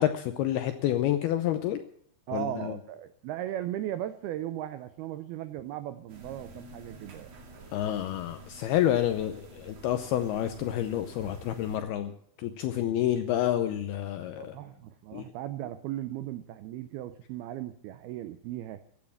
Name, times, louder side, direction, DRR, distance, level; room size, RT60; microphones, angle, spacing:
voice 1, 0.0-1.8 2.3-2.8 7.7-12.1 12.4-14.6 15.1-15.3, left 12 dB, 80° left, 8 dB, 2.3 m, -29 dB
voice 2, 2.3-7.3 14.4-18.8, right 12 dB, 90° right, 11 dB, 2.2 m, -37 dB
sound 1, 6.1-11.8, right 3 dB, 45° right, 2.5 m, -49 dB
15.5 x 10.5 x 7.2 m, 0.64 s
omnidirectional pair, 5.4 m